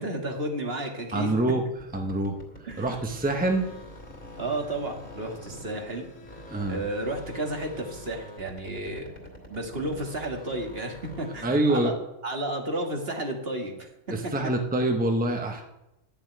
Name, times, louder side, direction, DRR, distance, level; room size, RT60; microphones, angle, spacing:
voice 1, 0.0-1.3 2.6-2.9 4.4-6.1 6.7-9.1 9.5-11.9 12.2-14.3, right 1 dB, 50° right, 2 dB, 2.1 m, -32 dB
voice 2, 1.1-1.7 1.9-2.4 2.8-3.7 6.5-6.8 11.4-11.9 14.1-15.6, right 2 dB, 10° right, 4 dB, 1.1 m, -25 dB
sound 1, 1.7-6.0 6.2-11.7, left 1 dB, 45° left, 2.9 m, -46 dB
sound 2, 3.1-8.2, left 2 dB, 70° left, 2.2 m, -49 dB
11.5 x 7.0 x 9.1 m, 0.89 s
omnidirectional pair, 1.3 m